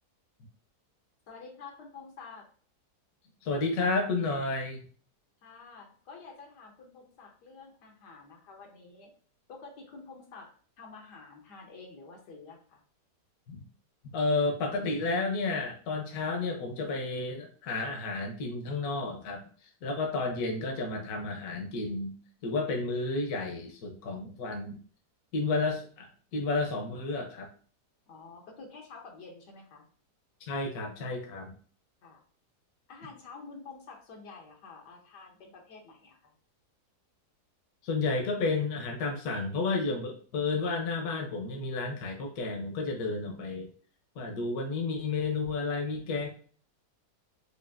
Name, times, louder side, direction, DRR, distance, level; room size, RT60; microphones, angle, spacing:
voice 1, 1.3-2.5 5.4-9.1 9.5-12.8 28.1-29.9 32.0-32.2 32.9-36.3, left 4 dB, 85° left, 1 dB, 1.5 m, -49 dB
voice 2, 3.4-4.8 13.5-13.6 14.1-19.4 19.8-22.1 22.4-24.8 25.3-27.5 30.4-31.5 37.8-43.7 44.2-46.3, left 3 dB, 70° left, 2 dB, 1.3 m, -31 dB
5.0 x 2.5 x 2.5 m, 0.43 s
omnidirectional pair, 1.8 m